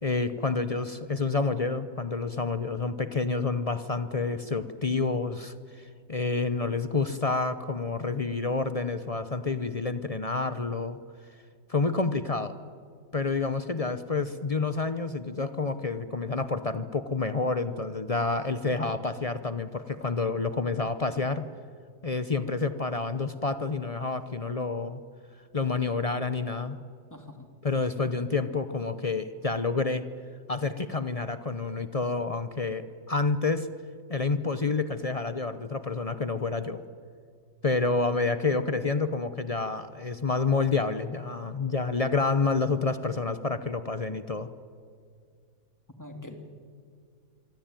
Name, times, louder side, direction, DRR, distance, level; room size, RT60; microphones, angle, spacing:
voice 1, 0.0-11.0 11.7-12.5 13.1-21.5 22.0-25.0 25.5-26.8 27.6-30.0 30.5-33.7 34.1-36.8 37.6-44.5, left 3 dB, 50° left, 11 dB, 0.4 m, -29 dB
voice 2, 27.1-27.5 46.0-46.4, left 1 dB, 10° left, 5 dB, 2.6 m, -43 dB
25.5 x 25.0 x 9.1 m, 2.2 s
omnidirectional pair, 2.0 m